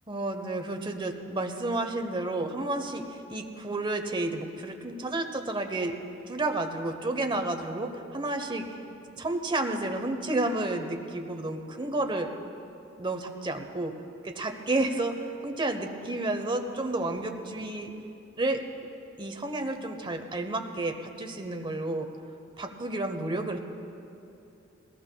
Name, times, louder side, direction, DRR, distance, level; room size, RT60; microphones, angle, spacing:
voice 1, 0.1-6.0 6.3-8.7 9.2-12.3 13.0-13.9 14.2-17.9 18.4-18.6 19.2-22.1 22.6-23.6, right 2 dB, 25° right, 5 dB, 0.9 m, -31 dB
21.0 x 18.5 x 2.3 m, 2.8 s
head